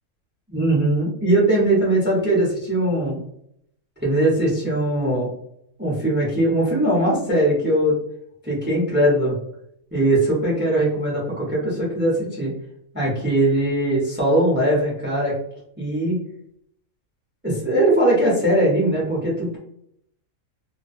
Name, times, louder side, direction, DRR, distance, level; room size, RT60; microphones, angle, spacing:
voice 1, 0.5-3.2 4.0-5.3 5.8-8.0 8.4-9.3 9.9-12.5 12.9-15.3 15.8-16.2 17.4-19.6, right 1 dB, 15° right, -5 dB, 0.4 m, -20 dB
2.3 x 2.2 x 2.5 m, 0.72 s
omnidirectional pair, 1.5 m